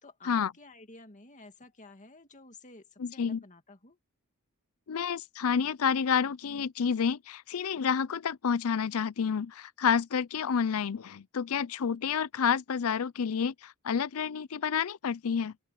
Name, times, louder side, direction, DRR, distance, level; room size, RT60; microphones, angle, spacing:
voice 1, 0.0-4.0, left 3 dB, 35° left, 2.1 m, -52 dB
voice 2, 3.0-3.4 4.9-15.5, left 7 dB, 70° left, 0.5 m, -29 dB
open air
head